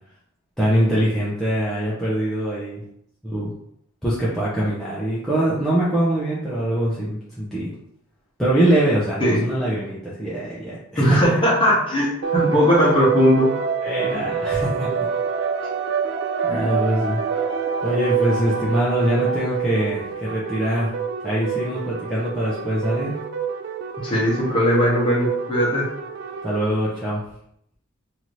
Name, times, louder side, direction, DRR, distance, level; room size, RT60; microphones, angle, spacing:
voice 1, 0.6-2.8 3.2-3.5 4.0-7.7 8.4-11.4 13.8-15.1 16.4-17.2 17.8-20.9 21.2-23.1 26.4-27.2, right 1 dB, ahead, -10 dB, 0.5 m, -23 dB
voice 2, 11.0-13.5 16.5-16.8 24.0-25.9, equal, 25° left, -5 dB, 0.9 m, -19 dB
sound 1, 12.2-26.6, right 6 dB, 55° right, 0.3 m, -27 dB
2.8 x 2.5 x 3.1 m, 0.72 s
head